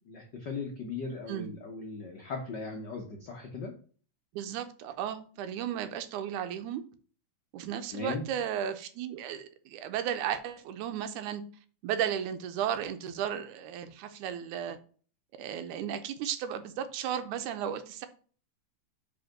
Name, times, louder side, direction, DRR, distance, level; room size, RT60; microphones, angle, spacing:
voice 1, 0.1-3.7 7.9-8.3, left 4 dB, 90° left, 0.9 m, -38 dB
voice 2, 4.3-6.8 7.5-11.4 11.8-14.8 15.4-18.1, right 9 dB, 80° right, 2.2 m, -34 dB
5.3 x 4.9 x 5.8 m
omnidirectional pair, 3.6 m